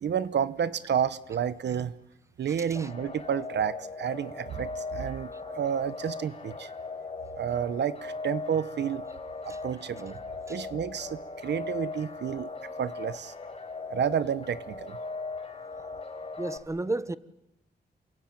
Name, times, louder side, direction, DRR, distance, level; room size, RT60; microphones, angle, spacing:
voice 1, 0.0-1.9 2.4-6.7 7.4-9.1 9.4-10.2 10.5-12.5 12.8-13.3 13.9-15.0, right 8 dB, 85° right, 1.0 m, -30 dB
sound 1, 2.8-16.6, left 3 dB, 35° left, 4.7 m, -39 dB
voice 2, 16.4-17.2, right 2 dB, 15° right, 1.1 m, -32 dB
28.0 x 23.5 x 8.9 m
wide cardioid pair, 100°, 17 cm